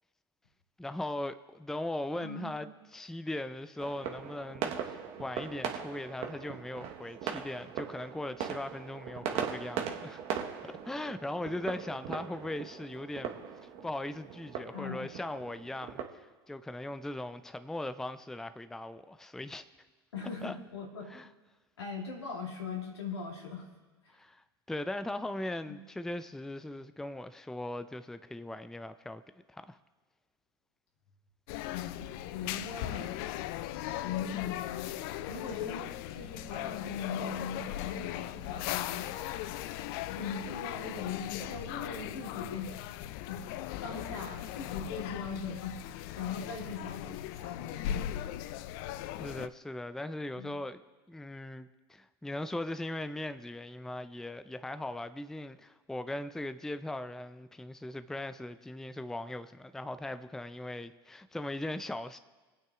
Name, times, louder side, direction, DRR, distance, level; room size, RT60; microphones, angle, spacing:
voice 1, 0.8-10.2 10.6-19.6 20.4-20.6 21.1-21.3 24.1-29.2 29.5-29.8 49.2-50.8 51.1-62.2, left 1 dB, 5° left, 0.4 m, -39 dB
voice 2, 2.2-2.6 14.7-15.1 20.1-21.1 21.8-23.7 24.0-24.2 25.6-25.8 31.7-33.1 34.0-34.9 35.3-39.0 40.1-42.7 43.3-43.5 43.8-45.8 46.1-48.0 50.4-50.5, left 5 dB, 85° left, 2.3 m, -40 dB
sound 1, 3.8-16.0, right 8 dB, 50° right, 1.2 m, -40 dB
sound 2, 31.5-49.5, left 13 dB, 60° left, 0.4 m, -38 dB
26.0 x 8.9 x 2.4 m
hypercardioid pair, 85°, 13 cm